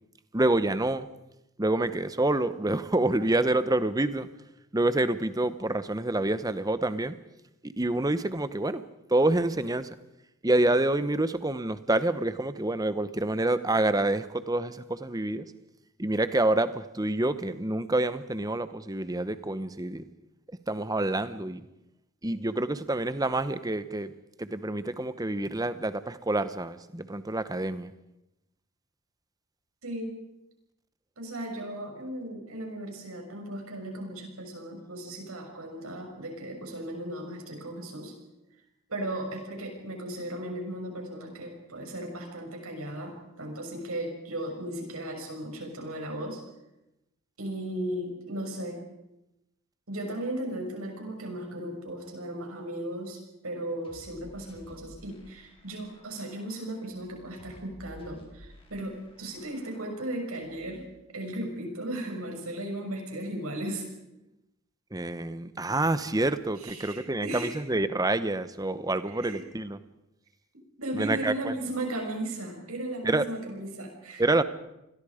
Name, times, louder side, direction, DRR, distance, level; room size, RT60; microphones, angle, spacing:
voice 1, 0.3-1.1 1.6-4.3 4.7-7.2 7.6-8.8 9.1-9.9 10.4-15.5 16.0-20.0 20.7-21.6 22.2-24.1 24.4-27.9 64.9-69.8 70.9-71.5 73.0-73.2 74.2-74.4, right 2 dB, 15° right, 13 dB, 0.9 m, -27 dB
voice 2, 29.8-30.2 31.2-38.1 38.9-46.4 47.4-48.8 49.9-60.8 61.1-63.8 66.6-67.6 68.7-69.4 70.8-74.2, right 1 dB, 80° right, 2 dB, 6.8 m, -36 dB
sound 1, 53.8-60.8, equal, 25° left, 4.5 m, -54 dB
29.5 x 22.0 x 5.1 m, 0.90 s
head